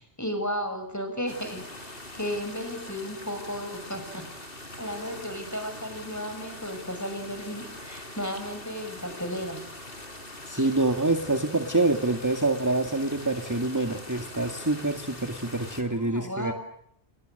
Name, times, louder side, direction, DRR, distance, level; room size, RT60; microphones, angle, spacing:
voice 1, 0.0-4.3 4.8-9.6 15.9-16.5, equal, 15° left, 7 dB, 7.4 m, -34 dB
sound 1, 1.3-15.8, left 1 dB, 55° left, 4.6 m, -43 dB
voice 2, 10.5-16.5, right 2 dB, 15° right, 6 dB, 2.0 m, -26 dB
29.0 x 28.5 x 6.6 m, 0.72 s
omnidirectional pair, 1.1 m